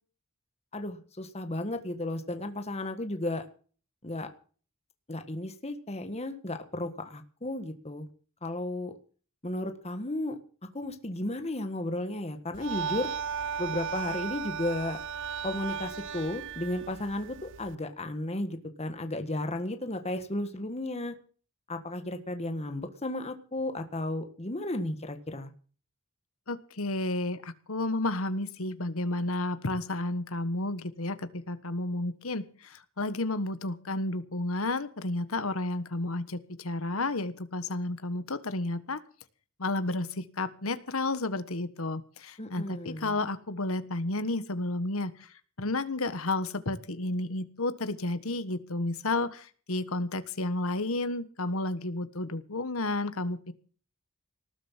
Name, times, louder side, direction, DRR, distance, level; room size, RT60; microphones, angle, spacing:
voice 1, 0.7-3.4 4.0-4.3 5.1-8.1 8.4-8.9 9.4-10.4 10.7-13.1 13.6-15.0 15.4-21.1 21.7-25.5 42.4-43.1, left 1 dB, 30° left, 7 dB, 1.6 m, -34 dB
sound 1, 12.5-17.7, right 7 dB, 60° right, 0.8 m, -36 dB
voice 2, 26.5-39.0 39.6-45.3 45.6-53.5, left 2 dB, 70° left, 12 dB, 1.4 m, -32 dB
19.0 x 7.8 x 7.4 m, 0.41 s
head